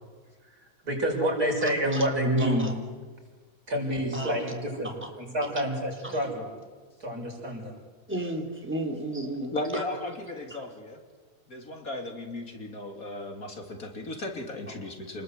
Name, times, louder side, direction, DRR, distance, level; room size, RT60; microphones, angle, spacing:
voice 1, 0.8-2.7 3.7-4.9 5.2-6.5 7.0-7.7, equal, 70° right, 0 dB, 7.0 m, -28 dB
voice 2, 2.4-2.7 4.1-4.3 4.8-5.1 6.1-6.2 8.1-9.8, right 1 dB, 5° right, 2 dB, 3.5 m, -33 dB
voice 3, 9.5-11.0 11.5-15.2, left 1 dB, 65° left, 4 dB, 3.5 m, -36 dB
28.5 x 20.5 x 8.3 m, 1.5 s
omnidirectional pair, 1.7 m